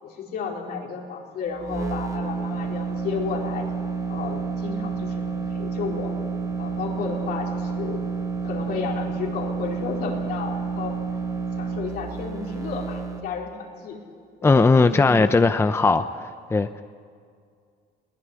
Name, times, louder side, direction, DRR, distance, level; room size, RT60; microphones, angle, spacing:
voice 1, 0.0-3.7 4.1-6.1 6.6-8.0 8.4-10.9 11.6-14.0 14.4-15.2, left 5 dB, 70° left, -1 dB, 4.6 m, -32 dB
sound 1, 1.5-13.2, right 5 dB, 20° right, 1.8 m, -30 dB
voice 2, 14.4-16.8, left 3 dB, 15° left, 10 dB, 0.7 m, -19 dB
22.0 x 18.0 x 9.7 m, 2.2 s
cardioid pair, 110°, 17 cm